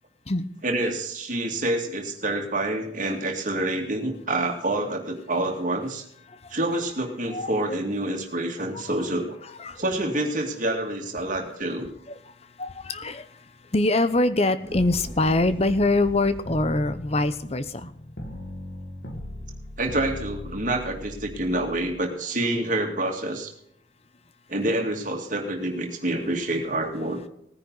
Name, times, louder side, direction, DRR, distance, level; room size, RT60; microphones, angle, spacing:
voice 1, 0.6-6.0 6.5-9.3 9.8-11.9 19.8-23.5 24.5-27.2, right 1 dB, 45° right, 2 dB, 2.4 m, -27 dB
voice 2, 7.3-7.8 8.7-8.8 9.6-9.8 12.1-12.3 12.6-13.4 13.7-17.9, left 2 dB, 35° left, 12 dB, 0.9 m, -24 dB
sound 1, 14.6-16.8, equal, 10° right, 3.0 m, -40 dB
sound 2, 16.5-22.0, left 1 dB, 60° left, 1.9 m, -38 dB
19.0 x 10.0 x 4.0 m, 0.74 s
head